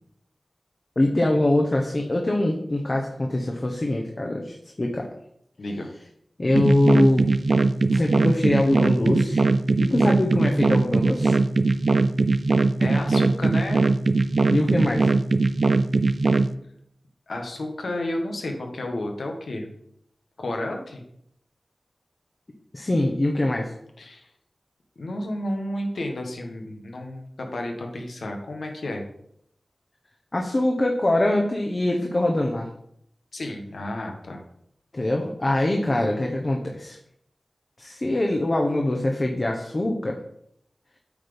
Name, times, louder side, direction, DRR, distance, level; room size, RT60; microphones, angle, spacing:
voice 1, 1.0-5.1 6.4-7.3 7.9-9.5 9.8-11.4 14.5-15.1 22.7-23.7 30.3-32.7 34.9-37.0 37.8-40.2, left 1 dB, 45° left, 1 dB, 1.2 m, -23 dB
voice 2, 5.6-5.9 12.8-13.9 17.3-19.7 20.4-21.0 24.0-24.3 25.0-29.0 33.3-34.4, left 1 dB, 85° left, 3 dB, 1.5 m, -31 dB
sound 1, 6.5-16.5, right 3 dB, 75° right, 0.5 m, -20 dB
8.6 x 4.0 x 5.2 m, 0.72 s
cardioid pair, 40°, 0 cm